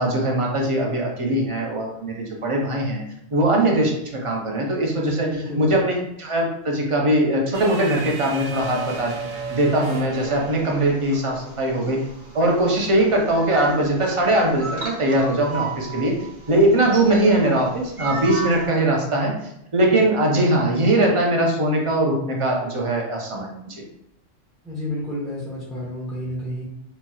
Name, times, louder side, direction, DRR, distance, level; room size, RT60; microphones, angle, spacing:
voice 1, 0.0-3.0 3.3-3.9 4.2-5.3 5.6-9.2 9.5-12.0 12.3-16.1 16.5-19.3 19.7-23.8, right 1 dB, 35° right, -1 dB, 0.5 m, -21 dB
voice 2, 5.2-5.7 24.6-26.6, left 1 dB, ahead, -8 dB, 0.8 m, -30 dB
sound 1, 7.5-11.9, right 5 dB, 85° right, 1.1 m, -35 dB
sound 2, 10.1-18.7, right 3 dB, 55° right, 1.3 m, -36 dB
4.2 x 2.8 x 2.3 m, 0.77 s
omnidirectional pair, 1.3 m